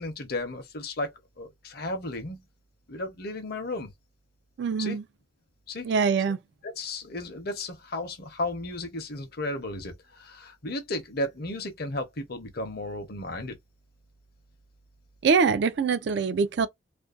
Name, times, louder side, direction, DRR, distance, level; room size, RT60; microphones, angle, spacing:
voice 1, 0.0-2.4 2.9-3.9 4.8-5.0 5.7-5.9 6.6-13.5, left 2 dB, 50° left, 0.7 m, -34 dB
voice 2, 4.6-5.0 5.8-6.4 15.2-16.7, right 5 dB, 55° right, 0.3 m, -24 dB
2.5 x 2.2 x 2.4 m
head